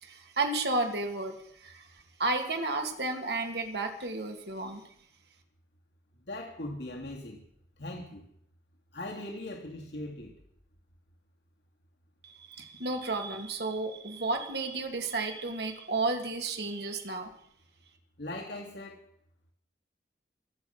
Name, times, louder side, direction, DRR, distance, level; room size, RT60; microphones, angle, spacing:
voice 1, 0.0-1.9 2.2-4.8 12.2-17.3, right 3 dB, 65° right, 3 dB, 2.7 m, -32 dB
voice 2, 6.2-7.4 7.8-8.3 8.9-10.4 18.2-19.1, left 1 dB, 70° left, -1 dB, 2.6 m, -40 dB
25.5 x 8.6 x 5.9 m, 0.67 s
head